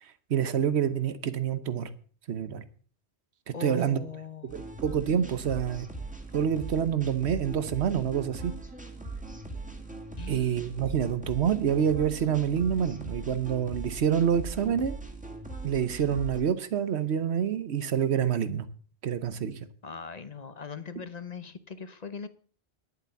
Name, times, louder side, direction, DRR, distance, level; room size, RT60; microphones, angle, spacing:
voice 1, 0.0-1.9 2.3-2.6 3.5-4.0 4.4-5.9 6.3-8.5 10.3-14.9 15.6-18.7 19.0-19.6, right 8 dB, 90° right, 1.2 m, -27 dB
voice 2, 3.5-4.6 10.2-10.6 19.8-22.3, left 6 dB, 40° left, 0.9 m, -40 dB
sound 1, 4.5-16.4, right 2 dB, 5° right, 2.0 m, -40 dB
11.0 x 8.2 x 6.9 m
omnidirectional pair, 1.1 m